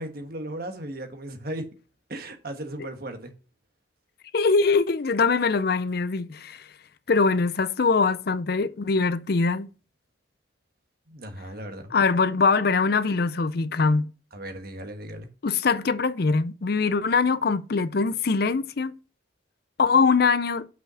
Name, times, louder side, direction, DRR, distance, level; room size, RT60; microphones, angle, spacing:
voice 1, 0.0-1.7 2.1-3.3 11.1-11.9 14.3-15.3, right 1 dB, 50° right, 1.4 m, -36 dB
voice 2, 4.3-6.7 7.1-9.7 11.9-14.1 15.4-18.9 19.8-20.7, left 4 dB, 55° left, 0.5 m, -22 dB
5.9 x 5.6 x 6.2 m
head